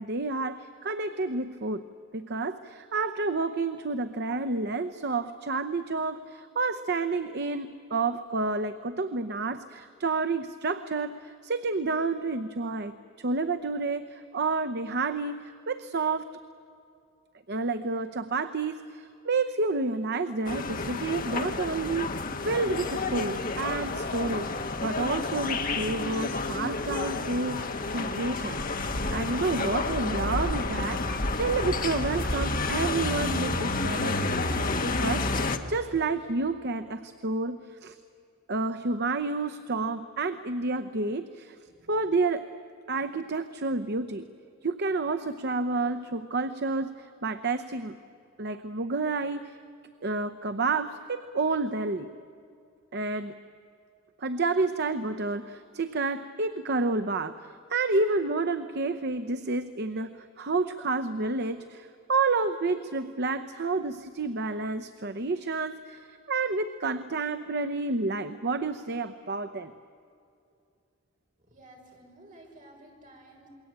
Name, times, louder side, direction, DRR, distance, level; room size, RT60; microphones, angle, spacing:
voice 1, 0.0-1.8 2.1-12.9 13.2-16.3 17.5-34.4 34.8-38.0 38.5-41.6 41.9-42.5 42.9-44.3 44.6-48.0 48.4-49.6 50.0-52.1 52.9-53.3 54.2-69.7, right 3 dB, 55° right, 10 dB, 0.8 m, -30 dB
sound 1, 20.5-35.6, left 3 dB, 45° left, 1.5 m, -30 dB
voice 2, 71.5-73.5, right 1 dB, 40° right, -1 dB, 6.5 m, -52 dB
28.0 x 22.0 x 8.8 m, 2.5 s
head